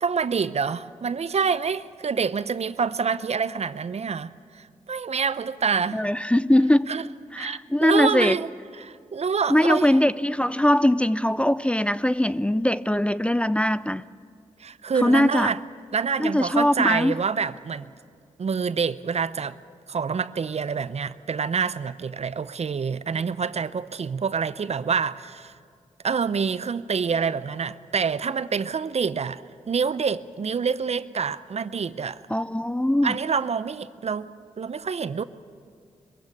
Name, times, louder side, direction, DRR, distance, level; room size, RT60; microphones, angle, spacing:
voice 1, 0.0-6.0 6.9-7.1 7.4-8.5 8.8-10.0 14.6-15.6 15.9-17.9 18.4-19.6 19.9-25.5 26.0-29.4 29.7-32.2 33.0-34.3 34.6-35.2, right 6 dB, 50° right, 0.7 m, -27 dB
voice 2, 5.9-6.9 7.3-8.4 9.5-14.0 15.0-15.5 16.2-17.1 32.3-33.2, left 1 dB, 10° left, 0.5 m, -21 dB
22.0 x 15.5 x 8.4 m
supercardioid pair, 45°, 14 cm